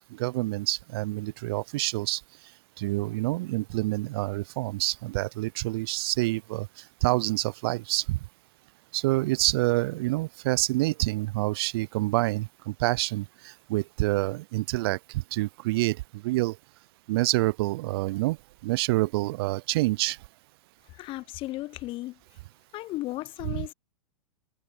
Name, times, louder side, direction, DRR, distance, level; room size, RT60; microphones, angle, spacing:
voice 1, 0.0-2.2 2.8-6.7 7.0-8.2 8.9-16.6 17.1-18.4 18.6-20.2 23.5-23.6, right 20 dB, 45° right, 0.5 m, -27 dB
voice 2, 20.9-22.2 22.7-23.7, left 18 dB, 30° left, 0.8 m, -35 dB
figure-of-eight pair, 105°, 17 cm